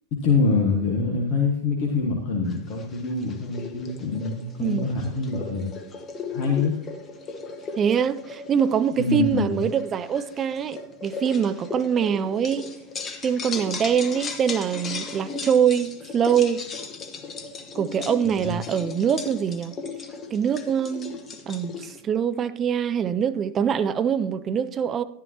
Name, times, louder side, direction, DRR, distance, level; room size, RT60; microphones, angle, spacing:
voice 1, 0.2-5.7 6.3-6.8 9.0-9.6 18.4-18.6, left 4 dB, 40° left, 1.5 m, -25 dB
sound 1, 2.5-22.0, left 4 dB, 25° left, 1.0 m, -37 dB
voice 2, 7.8-12.7 13.2-16.6 17.7-19.8 20.3-21.2 21.5-25.0, right 8 dB, 25° right, 0.5 m, -24 dB
11.0 x 11.0 x 2.9 m
figure-of-eight pair, 90°, 0 cm